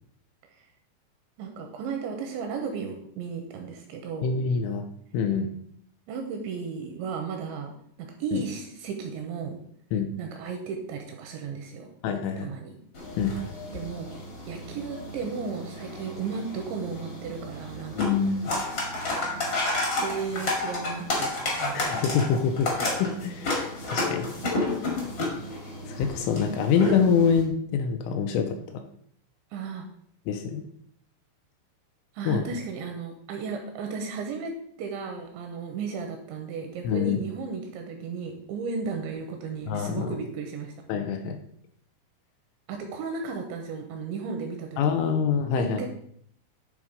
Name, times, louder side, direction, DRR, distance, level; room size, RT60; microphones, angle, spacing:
voice 1, 1.4-4.4 6.1-7.7 8.0-9.6 10.2-11.9 12.4-12.8 13.7-14.1 14.5-18.2 19.8-22.0 26.6-26.7 29.5-29.9 32.1-40.7 42.7-45.1 45.6-45.9, right 5 dB, 80° right, 3 dB, 2.8 m, -35 dB
voice 2, 4.2-4.8 5.1-5.5 8.3-8.4 9.9-10.1 12.0-12.5 13.2-13.4 18.0-18.5 21.7-22.7 23.0-24.3 25.9-28.8 30.3-30.6 32.3-32.4 36.8-37.2 39.7-40.1 40.9-41.4 44.8-45.8, left 6 dB, 85° left, 5 dB, 3.0 m, -25 dB
sound 1, 12.9-27.4, left 2 dB, 65° left, 1.1 m, -31 dB
10.5 x 3.7 x 5.1 m, 0.67 s
omnidirectional pair, 5.9 m